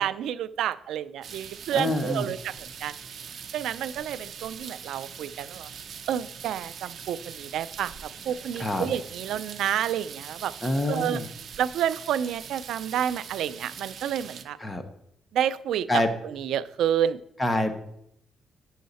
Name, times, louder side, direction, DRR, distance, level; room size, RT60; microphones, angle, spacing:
voice 1, 0.0-2.5 2.8-2.9 3.5-5.7 6.1-7.9 8.3-10.5 10.9-11.2 11.6-14.6 15.3-15.9 16.4-17.2, right 10 dB, 80° right, 16 dB, 0.4 m, -29 dB
sound 1, 1.2-14.4, right 7 dB, 55° right, 0.7 m, -42 dB
voice 2, 1.7-2.3 8.3-8.9 10.6-11.3 14.6-14.8 15.9-16.1 17.4-17.8, left 1 dB, 15° left, 7 dB, 1.1 m, -26 dB
10.0 x 6.5 x 4.2 m, 0.74 s
cardioid pair, 90°, 0 cm